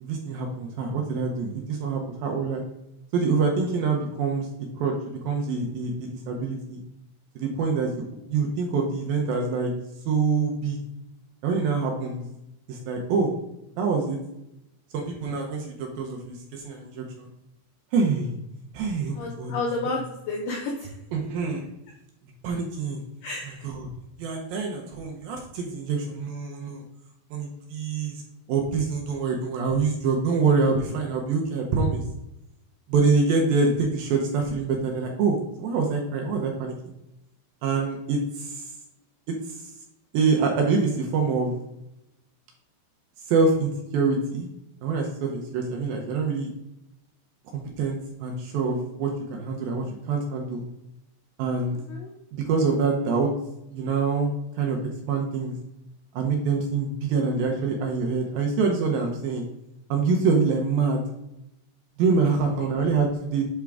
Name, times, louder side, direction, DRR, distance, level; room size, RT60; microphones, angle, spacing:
voice 1, 0.0-2.6 3.1-4.5 4.8-6.8 7.4-7.9 8.3-9.7 10.1-10.8 11.4-12.2 12.7-13.3 13.8-14.2 14.9-17.3 17.9-18.4 18.7-20.0 21.1-21.7 22.4-23.0 23.6-23.9 24.2-26.8 27.3-28.2 28.5-32.0 32.9-36.8 37.6-38.7 39.3-39.7 40.1-41.5 43.3-44.5 44.8-46.5 47.5-50.6 51.4-51.8 52.3-53.3 53.7-54.8 55.1-55.6 56.1-59.5 59.9-61.0 62.0-63.4, right 4 dB, 75° right, 1 dB, 2.3 m, -25 dB
voice 2, 19.2-20.9 23.2-23.7 51.9-52.1, left 3 dB, 80° left, 0 dB, 1.9 m, -31 dB
8.4 x 3.7 x 3.4 m, 0.86 s
omnidirectional pair, 4.8 m